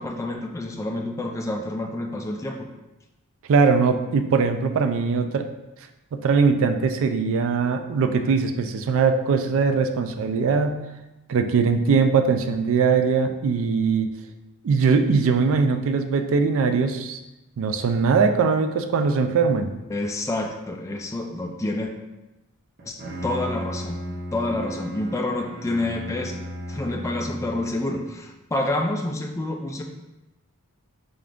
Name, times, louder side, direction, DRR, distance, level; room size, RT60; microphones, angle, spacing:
voice 1, 0.0-2.7 19.9-21.9 22.8-23.0 23.2-24.0 24.3-26.4 26.7-29.8, left 2 dB, 15° left, 2 dB, 0.3 m, -28 dB
voice 2, 3.5-5.5 6.1-10.8 11.3-14.1 14.6-17.2 17.6-19.7, right 5 dB, 65° right, 7 dB, 0.3 m, -21 dB
Bowed string instrument, 22.8-27.9, equal, 50° right, 0.7 m, -35 dB
3.8 x 3.4 x 2.5 m, 0.99 s
head